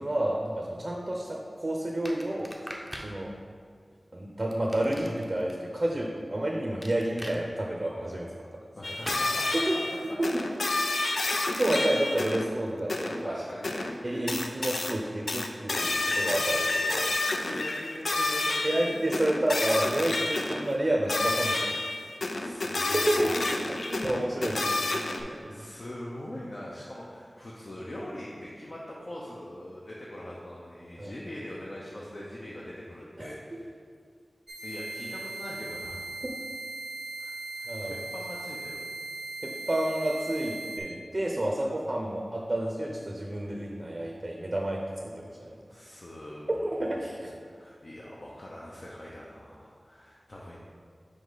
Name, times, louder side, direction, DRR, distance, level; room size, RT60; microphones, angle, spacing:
voice 1, 0.0-2.5 3.0-3.3 4.1-8.3 9.7-9.8 10.0-10.3 11.6-13.4 14.0-17.2 18.6-21.8 22.9-23.3 23.9-25.6 31.0-31.1 33.2-33.3 37.7-38.1 39.4-44.8 45.2-45.6 46.6-47.3, right 1 dB, 40° right, 0 dB, 0.6 m, -30 dB
sound 1, 2.1-3.1 4.5-5.5 6.8-7.4 9.0-9.3, equal, ahead, 0.6 m, -41 dB
sound 2, 8.8-12.5 12.9-13.2 13.6-13.9 14.3-14.9 15.3-20.7 21.1-25.2, left 2 dB, 85° left, 0.4 m, -29 dB
voice 2, 8.8-9.5 10.6-10.8 11.1-11.6 13.2-14.2 16.2-16.4 17.4-19.0 22.1-24.0 25.2-33.7 34.6-36.1 37.2-38.9 45.7-46.7 47.2-50.6, left 1 dB, 50° left, -5 dB, 0.7 m, -42 dB
sound 3, 34.5-40.8, right 2 dB, 70° right, 0.8 m, -38 dB
5.1 x 4.8 x 3.9 m, 2.1 s
wide cardioid pair, 65°, 0 cm